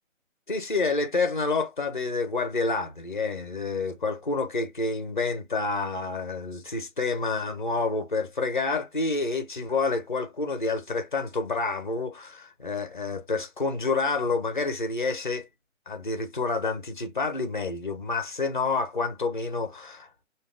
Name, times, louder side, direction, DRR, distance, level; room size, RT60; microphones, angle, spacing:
voice 1, 0.5-15.5 15.9-20.1, left 3 dB, 40° left, 0.4 m, -28 dB
3.2 x 2.3 x 2.3 m
hypercardioid pair, 165°, 40 cm